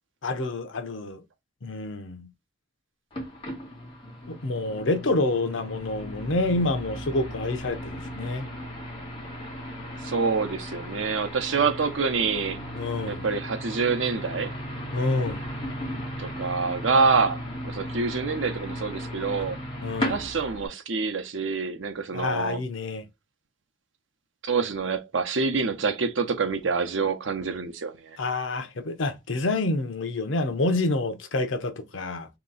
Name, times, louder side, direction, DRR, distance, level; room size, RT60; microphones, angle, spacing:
voice 1, 0.2-1.2 1.6-2.3 4.3-8.5 12.8-13.3 14.9-15.5 19.8-20.2 22.1-23.0 28.2-32.3, left 2 dB, 80° left, 0.7 m, -28 dB
sound 1, 3.1-20.7, equal, 30° left, 1.6 m, -36 dB
voice 2, 10.0-12.6 13.1-14.5 16.2-19.6 20.0-22.6 24.4-28.2, right 4 dB, 75° right, 0.7 m, -26 dB
3.2 x 2.9 x 3.8 m
head